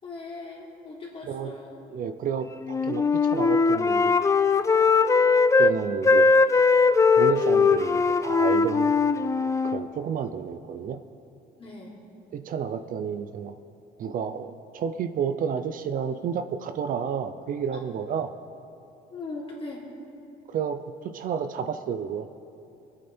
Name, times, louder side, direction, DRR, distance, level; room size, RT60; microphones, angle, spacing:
voice 1, 0.0-1.8 11.6-12.0 19.1-19.9, left 3 dB, 35° left, -4 dB, 3.5 m, -39 dB
voice 2, 1.9-4.1 5.6-6.3 7.1-8.9 9.6-11.0 12.3-13.5 14.0-18.3 20.5-22.3, right 7 dB, 55° right, 10 dB, 0.6 m, -31 dB
Wind instrument woodwind instrument, 2.6-5.7 6.0-9.8, left 4 dB, 20° left, 0.4 m, -20 dB
22.0 x 8.7 x 4.4 m, 2.7 s
cardioid pair, 110°, 17 cm